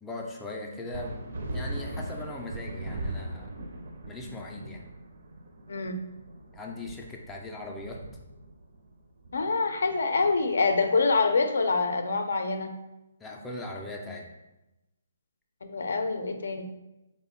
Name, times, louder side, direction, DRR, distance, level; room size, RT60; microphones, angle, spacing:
voice 1, 0.0-3.6 4.1-4.8 6.5-8.0 13.2-14.3, left 2 dB, 5° left, -1 dB, 0.3 m, -39 dB
sound 1, 0.9-10.9, right 1 dB, 65° right, 0.5 m, -39 dB
voice 2, 5.7-6.0 9.3-12.7 15.7-16.7, left 3 dB, 80° left, 7 dB, 0.4 m, -26 dB
3.5 x 2.0 x 3.6 m, 0.96 s
hypercardioid pair, 165°, 0 cm